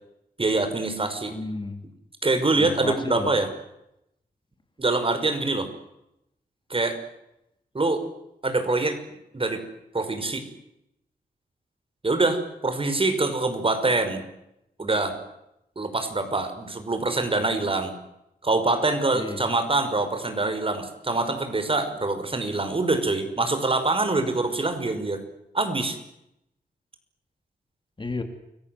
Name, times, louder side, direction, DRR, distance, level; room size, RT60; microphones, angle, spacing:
voice 1, 0.4-1.3 2.2-3.5 4.8-5.7 6.7-7.0 7.7-8.0 8.4-9.0 9.3-9.6 9.9-10.4 12.0-14.2 14.8-15.2 15.8-17.9 18.4-25.2 25.5-26.0, right 2 dB, 30° right, 8 dB, 5.6 m, -24 dB
voice 2, 1.3-1.8 2.6-3.3 19.1-19.4 28.0-28.2, left 3 dB, 30° left, 7 dB, 3.3 m, -32 dB
30.0 x 22.5 x 7.9 m, 0.83 s
wide cardioid pair, 95°, 17 cm